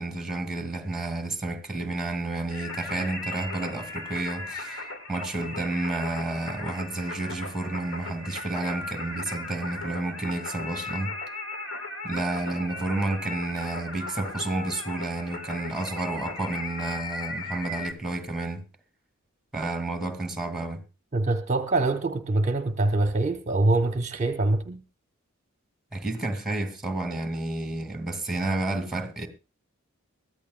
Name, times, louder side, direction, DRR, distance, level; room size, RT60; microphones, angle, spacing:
voice 1, 0.0-11.1 12.0-18.6 19.5-20.8 25.9-29.3, right 2 dB, ahead, 2.3 m, -31 dB
Singing, 2.5-17.9, left 2 dB, 75° left, 2.1 m, -37 dB
voice 2, 21.1-24.8, right 2 dB, 35° right, 0.9 m, -24 dB
22.5 x 15.0 x 2.3 m
head